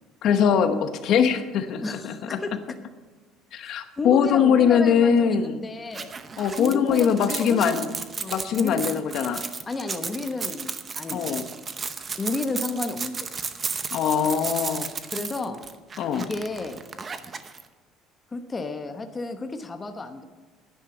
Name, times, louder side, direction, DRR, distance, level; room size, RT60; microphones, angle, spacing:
voice 1, 0.2-2.4 3.5-5.6 6.4-7.8 8.3-9.4 11.1-11.4 13.9-14.9 16.0-16.2, left 7 dB, 55° left, 9 dB, 0.9 m, -22 dB
voice 2, 1.8-2.5 4.0-6.1 6.6-7.9 8.2-8.8 9.7-11.4 12.2-13.2 15.1-15.6 16.1-16.8 18.3-20.2, left 3 dB, 20° left, 7 dB, 0.9 m, -32 dB
sound 1, 5.9-17.6, right 5 dB, 25° right, 0.8 m, -34 dB
10.5 x 9.9 x 7.1 m, 1.3 s
cardioid pair, 145°, 0 cm